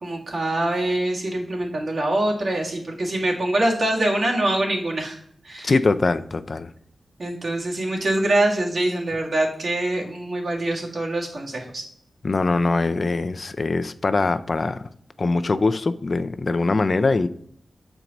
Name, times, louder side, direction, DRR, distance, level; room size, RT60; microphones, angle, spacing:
voice 1, 0.0-5.2 5.4-5.7 7.2-11.8, right 1 dB, 65° right, -1 dB, 1.6 m, -24 dB
voice 2, 5.6-6.7 12.2-14.9 15.2-17.3, left 3 dB, 50° left, 12 dB, 0.4 m, -22 dB
7.0 x 4.6 x 3.9 m, 0.65 s
wide cardioid pair, 85°, 0 cm